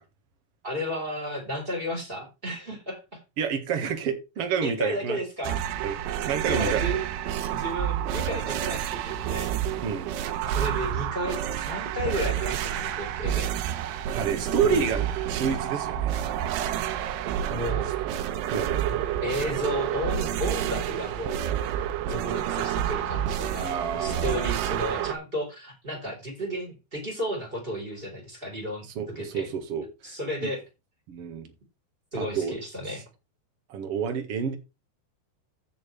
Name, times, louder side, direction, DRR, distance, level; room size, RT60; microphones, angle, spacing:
voice 1, 0.6-3.2 4.6-5.6 6.5-7.0 7.5-9.5 10.4-13.5 14.6-14.8 17.5-17.9 19.2-21.4 22.1-28.9 29.2-29.5 30.0-30.6 32.1-33.0, equal, 15° right, 3.8 m, -33 dB
voice 2, 3.4-5.2 5.8-6.0 6.2-6.8 9.8-10.1 14.1-16.1 18.5-18.7 23.6-24.5 28.9-30.1 30.4-30.5 31.1-31.5 32.2-32.5 33.7-34.6, right 6 dB, 55° right, 1.6 m, -29 dB
sound 1, 5.4-25.2, right 10 dB, 80° right, 3.0 m, -29 dB
14.5 x 6.6 x 3.3 m
omnidirectional pair, 4.9 m